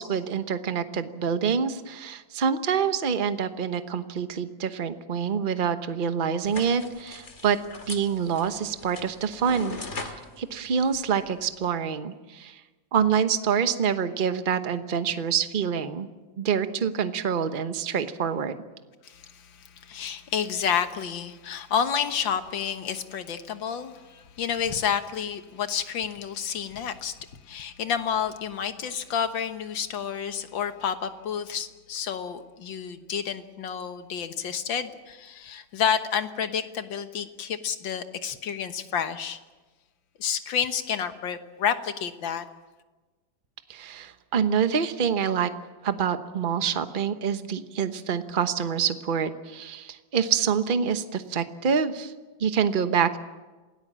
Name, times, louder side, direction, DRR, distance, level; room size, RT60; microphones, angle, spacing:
voice 1, 0.0-7.6 7.9-12.6 12.9-16.1 16.4-18.6 43.7-45.5 45.8-52.1 52.4-53.2, right 7 dB, 35° right, 9 dB, 1.0 m, -26 dB
sound 1, 6.4-11.7, left 3 dB, 35° left, 2.3 m, -41 dB
voice 2, 19.0-27.1 27.5-39.4 40.2-42.5, left 8 dB, 75° left, 9 dB, 2.0 m, -30 dB
27.5 x 18.5 x 7.5 m, 1.3 s
omnidirectional pair, 2.1 m